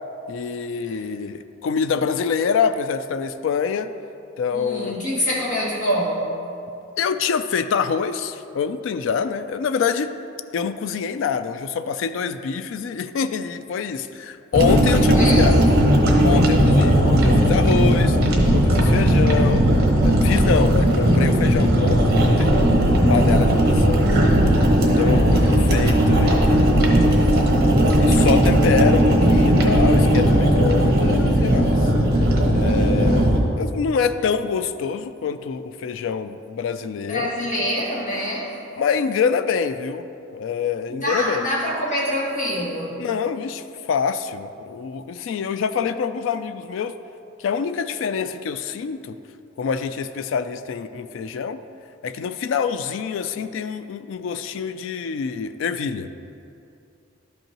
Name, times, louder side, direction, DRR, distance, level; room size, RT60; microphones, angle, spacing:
voice 1, 0.3-3.9 4.4-5.0 7.0-10.1 10.5-15.6 16.2-18.2 18.5-19.6 20.0-22.6 23.1-24.3 24.8-27.0 28.0-31.8 32.5-37.3 38.8-40.1 40.3-41.5 43.0-46.9 47.4-49.1 49.6-51.6 52.0-56.1, left 6 dB, 75° left, 11 dB, 0.3 m, -25 dB
voice 2, 4.5-6.3 15.1-15.8 27.2-27.3 37.1-38.5 40.9-43.0, equal, 40° left, -6 dB, 1.8 m, -25 dB
sound 1, 14.5-33.4, equal, 50° right, 1.1 m, -17 dB
12.0 x 5.4 x 2.9 m, 2.6 s
head